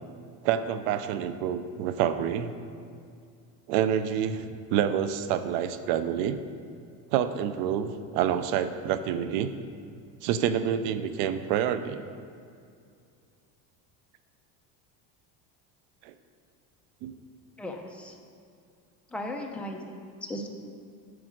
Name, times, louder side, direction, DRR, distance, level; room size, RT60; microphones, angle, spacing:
voice 1, 0.4-2.5 3.7-6.4 7.1-9.5 10.2-12.0 16.0-16.1 17.0-17.1, right 9 dB, 80° right, 11 dB, 0.6 m, -28 dB
voice 2, 17.6-18.2 19.1-20.5, left 1 dB, 5° left, 1 dB, 0.5 m, -37 dB
7.9 x 4.9 x 6.2 m, 2.3 s
cardioid pair, 140°, 44 cm